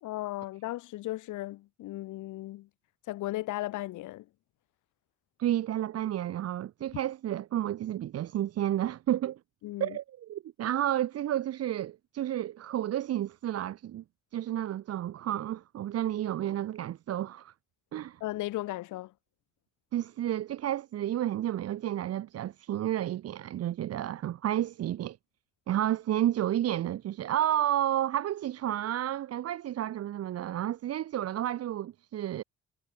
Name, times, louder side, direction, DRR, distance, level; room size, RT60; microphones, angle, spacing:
voice 1, 0.0-2.7 3.1-4.3 9.6-10.0 18.2-19.1, left 17 dB, 75° left, 0.7 m, -36 dB
voice 2, 5.4-9.4 9.8-14.0 14.3-17.5 17.9-18.2 19.9-25.2 25.7-32.4, right 12 dB, 55° right, 0.6 m, -31 dB
cardioid pair, 90°, 30 cm